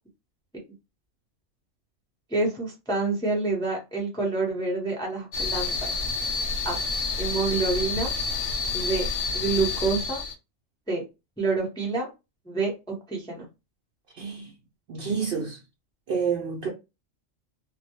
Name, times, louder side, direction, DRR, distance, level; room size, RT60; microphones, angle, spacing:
voice 1, 2.3-5.7 6.6-6.8 7.2-8.1 8.7-9.0 9.3-10.2 10.9-11.0 11.4-12.1 12.5-13.4, right 3 dB, 5° left, 0.5 m, -27 dB
sound 1, 5.3-10.3, left 4 dB, 75° left, 0.9 m, -29 dB
voice 2, 14.1-14.6 14.9-15.6 16.1-16.7, right 6 dB, 60° right, 0.7 m, -29 dB
2.2 x 2.1 x 2.8 m
omnidirectional pair, 1.3 m